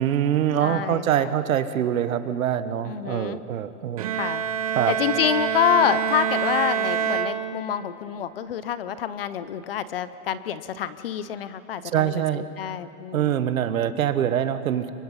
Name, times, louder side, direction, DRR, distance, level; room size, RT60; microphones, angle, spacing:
voice 1, 0.0-4.1 4.7-4.9 11.9-12.4 13.1-14.9, right 10 dB, 65° right, 11 dB, 1.4 m, -24 dB
voice 2, 0.6-1.3 2.8-3.4 4.1-4.4 4.9-13.4, left 9 dB, 40° left, 14 dB, 0.7 m, -27 dB
Bowed string instrument, 4.0-8.0, right 8 dB, 25° right, 0.6 m, -26 dB
28.5 x 23.5 x 5.6 m, 2.5 s
hypercardioid pair, 170°, 45 cm